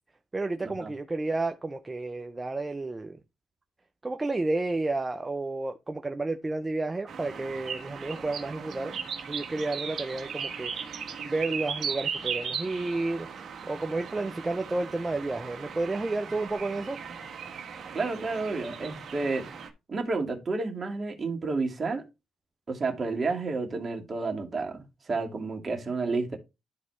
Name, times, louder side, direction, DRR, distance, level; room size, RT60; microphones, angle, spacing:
voice 1, 0.3-3.2 4.0-8.9 9.3-13.3 13.7-17.0, right 2 dB, 20° right, 0.6 m, -31 dB
sound 1, 7.1-19.7, right 6 dB, 60° right, 1.6 m, -37 dB
voice 2, 17.9-19.5 19.9-22.0 22.7-26.4, right 3 dB, 35° right, 2.1 m, -30 dB
12.0 x 4.1 x 3.2 m
cardioid pair, 90°, 0 cm